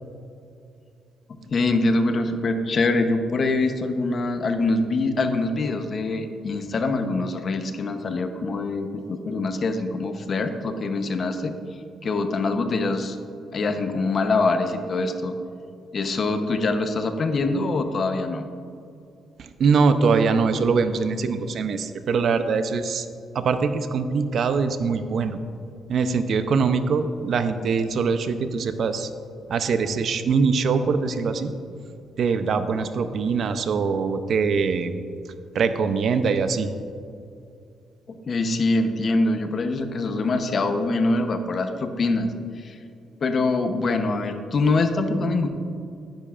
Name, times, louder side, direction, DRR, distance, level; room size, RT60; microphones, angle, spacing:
voice 1, 1.5-11.6 12.0-13.2 13.5-15.4 15.9-18.5 38.1-42.3 42.6-42.8 43.2-45.5, left 3 dB, 45° left, 7 dB, 0.8 m, -24 dB
voice 2, 19.4-23.1 23.3-25.4 25.9-29.1 29.5-31.5 32.2-34.9 35.5-36.7, right 5 dB, 60° right, 10 dB, 0.6 m, -23 dB
10.5 x 10.0 x 2.5 m, 2.5 s
cardioid pair, 90°, 0 cm